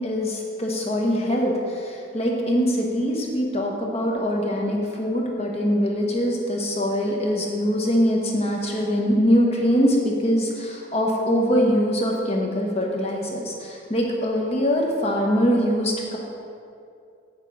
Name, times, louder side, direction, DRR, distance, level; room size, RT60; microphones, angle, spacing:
voice 1, 0.0-1.5 1.8-16.2, equal, 30° left, -1 dB, 1.1 m, -23 dB
8.1 x 6.7 x 4.9 m, 2.5 s
head